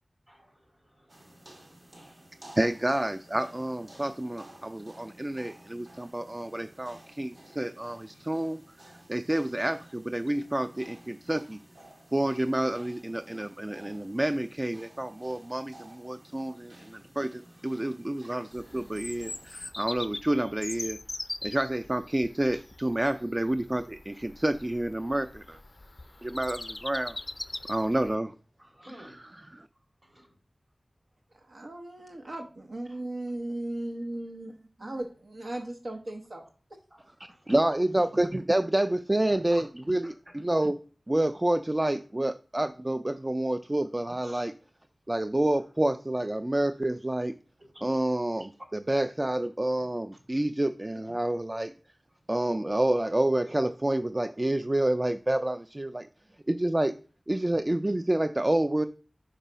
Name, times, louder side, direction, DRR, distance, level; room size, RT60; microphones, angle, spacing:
voice 1, 0.3-2.6 4.3-4.4 4.9-5.1 6.0-6.1 6.5-6.9 8.1-8.2 9.5-9.6 11.9-12.0 16.5-16.6 16.9-17.0 17.4-18.4 22.5-22.6 27.5-27.6 28.6-29.1 30.0-30.3 32.9-33.0 36.9-37.5 37.9-38.3 39.3-39.6 40.0-40.1 43.1-43.2 44.2-44.5 47.7-47.9 57.3-57.5, equal, 45° right, -1 dB, 3.4 m, -54 dB
sound 1, 1.1-19.7, right 1 dB, 70° right, 1.8 m, -53 dB
voice 2, 2.6-8.6 9.1-11.6 12.1-21.0 21.4-25.6 26.2-27.2 27.7-28.3 29.5-29.7 37.5-40.8 41.1-44.5 45.1-47.3 47.8-51.7 52.3-56.1 56.5-56.9 57.3-58.9, right 1 dB, 30° right, 10 dB, 0.3 m, -28 dB
Bird vocalization bird call bird song, 18.5-28.1, left 2 dB, 45° left, 0.4 m, -41 dB
voice 3, 31.3-36.4, right 1 dB, 85° right, 2 dB, 0.8 m, -37 dB
5.4 x 5.0 x 5.5 m, 0.39 s
wide cardioid pair, 65°, 0 cm